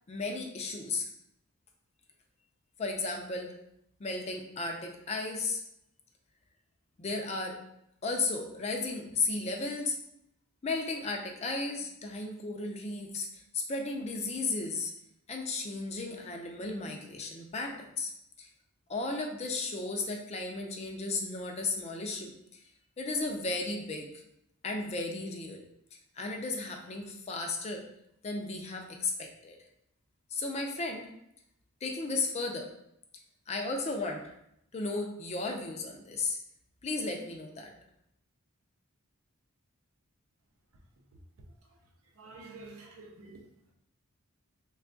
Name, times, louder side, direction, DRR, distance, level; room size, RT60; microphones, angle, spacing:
voice 1, 0.1-1.1 2.8-3.6 4.0-5.6 7.0-7.6 8.0-10.0 10.6-13.3 13.5-14.9 15.3-18.1 18.4-18.5 18.9-22.6 23.0-24.1 24.6-25.6 26.2-27.8 28.2-29.6 30.3-31.1 31.8-32.7 33.5-34.3 34.7-36.4 36.8-37.7, left 3 dB, 30° left, 2 dB, 0.4 m, -34 dB
voice 2, 42.2-43.5, right 3 dB, 70° right, 2 dB, 0.6 m, -49 dB
3.3 x 2.3 x 3.7 m, 0.77 s
head